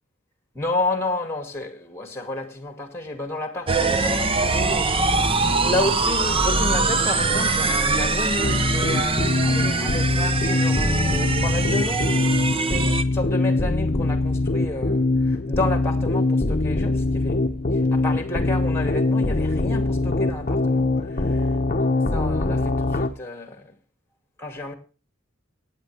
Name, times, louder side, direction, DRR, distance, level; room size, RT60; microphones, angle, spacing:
voice 1, 0.5-5.2 5.6-12.4 12.6-17.4 17.9-21.5 21.8-23.7 24.4-24.7, left 2 dB, 10° left, 2.5 m, -31 dB
sound 1, 3.7-13.0, right 3 dB, 30° right, 0.8 m, -23 dB
sound 2, 8.4-23.1, left 2 dB, 40° left, 0.9 m, -23 dB
17.5 x 9.4 x 3.4 m
head